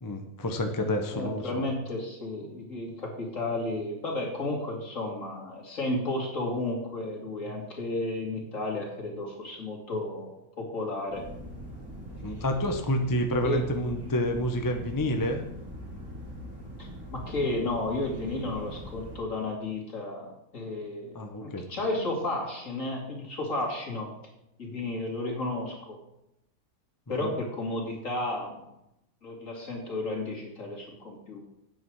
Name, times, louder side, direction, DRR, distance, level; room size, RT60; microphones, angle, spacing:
voice 1, 0.0-1.6 12.2-15.4 21.1-21.6 27.2-27.4, equal, 20° left, 4 dB, 0.7 m, -29 dB
voice 2, 1.1-11.3 13.4-13.6 16.8-24.1 24.6-26.0 27.1-28.7 29.2-31.4, left 2 dB, 65° left, -2 dB, 2.9 m, -33 dB
sound 1, 11.1-19.2, equal, 40° right, 4.0 m, -42 dB
9.1 x 8.1 x 4.7 m, 0.85 s
omnidirectional pair, 1.5 m